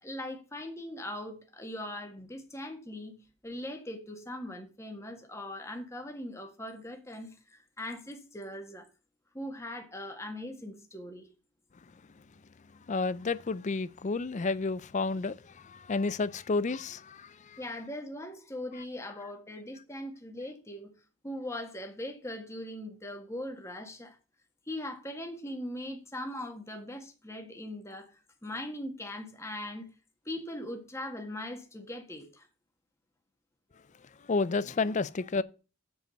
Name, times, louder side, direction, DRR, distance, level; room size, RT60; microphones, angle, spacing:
voice 1, 0.0-3.2 3.4-8.9 9.3-11.3 17.6-20.9 21.2-24.2 24.7-29.9 30.2-32.5, left 1 dB, 10° left, 1.6 m, -40 dB
voice 2, 12.9-15.3 15.9-17.3 34.3-35.4, left 3 dB, 30° left, 0.4 m, -30 dB
8.0 x 5.2 x 6.4 m
head